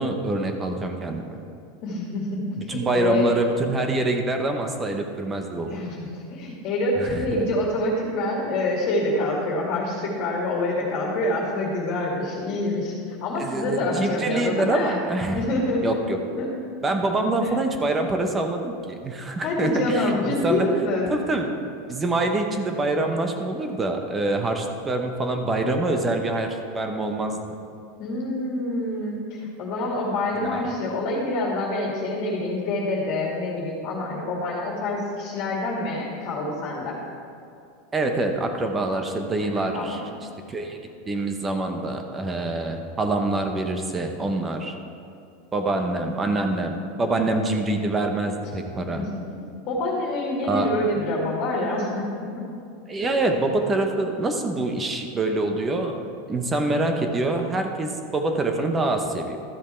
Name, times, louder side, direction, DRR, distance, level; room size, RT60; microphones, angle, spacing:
voice 1, 0.0-1.4 2.7-5.8 7.0-7.4 13.4-15.4 15.8-16.2 16.8-20.7 21.1-21.5 21.9-27.4 30.3-30.7 37.9-40.0 40.5-40.8 41.1-44.8 45.5-49.0 50.4-50.7 52.9-59.4, right 2 dB, 15° right, 4 dB, 0.9 m, -25 dB
voice 2, 1.8-3.3 5.7-15.0 15.3-16.0 16.3-16.5 17.2-17.6 19.4-21.1 28.0-37.0 39.4-40.0 48.9-49.1 49.7-52.3, left 2 dB, 45° left, -3 dB, 2.3 m, -26 dB
13.0 x 7.1 x 4.5 m, 2.4 s
supercardioid pair, 135°, 0 cm